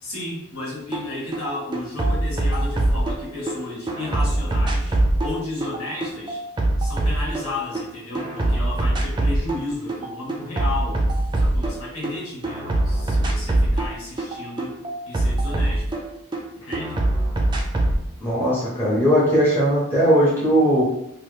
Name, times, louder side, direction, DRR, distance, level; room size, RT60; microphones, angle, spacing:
voice 1, 0.0-6.4 6.8-11.0 11.3-14.8 15.1-15.9 16.5-17.0, left 2 dB, 75° left, -4 dB, 1.2 m, -33 dB
sound 1, 0.9-1.0 1.3-3.5 3.9-7.8 8.1-9.6 9.9-12.1 12.4-16.4 16.7-18.0, right 1 dB, 20° right, 0.3 m, -22 dB
voice 2, 18.2-20.8, equal, 10° left, -8 dB, 0.7 m, -18 dB
3.0 x 2.3 x 3.1 m, 0.80 s
head